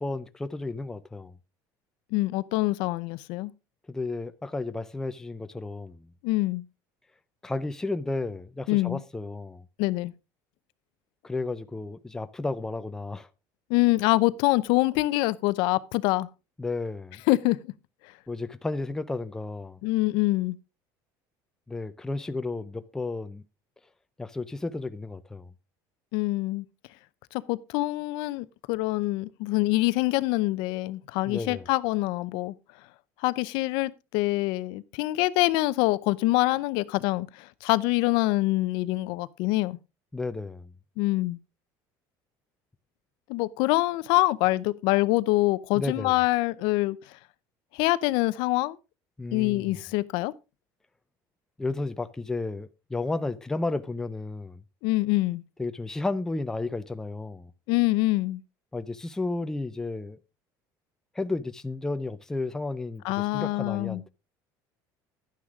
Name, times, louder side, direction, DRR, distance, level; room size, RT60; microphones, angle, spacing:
voice 1, 0.0-1.4 3.9-6.1 7.4-9.7 11.2-13.3 16.6-17.2 18.3-19.8 21.7-23.4 24.2-25.5 31.3-31.7 40.1-40.7 45.7-46.2 49.2-49.8 51.6-54.6 55.6-57.5 58.7-60.2 61.1-64.1, left 3 dB, 5° left, 0.5 m, -33 dB
voice 2, 2.1-3.5 6.2-6.6 8.7-9.0 9.8-10.1 13.7-16.3 17.3-17.6 19.8-20.6 26.1-26.6 27.3-32.5 33.2-39.8 41.0-41.4 43.3-47.0 47.7-48.8 49.3-50.3 54.8-55.4 57.7-58.4 63.0-64.0, left 19 dB, 70° left, 0.6 m, -25 dB
11.5 x 9.6 x 3.6 m
cardioid pair, 160°, 8 cm